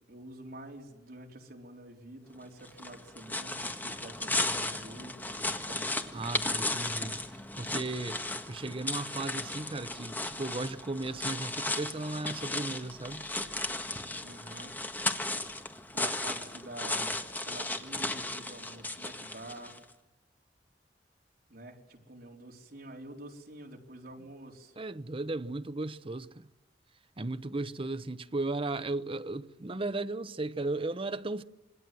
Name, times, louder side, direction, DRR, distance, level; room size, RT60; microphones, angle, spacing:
voice 1, 0.0-5.9 14.2-14.8 15.9-19.7 21.5-24.8, right 1 dB, 60° right, 4.0 m, -47 dB
sound 1, 2.6-19.8, left 2 dB, 10° left, 1.6 m, -35 dB
voice 2, 6.1-7.2 7.5-8.2 8.5-13.3 24.8-26.5 27.2-31.4, right 2 dB, 30° right, 0.8 m, -35 dB
27.0 x 22.5 x 7.7 m
head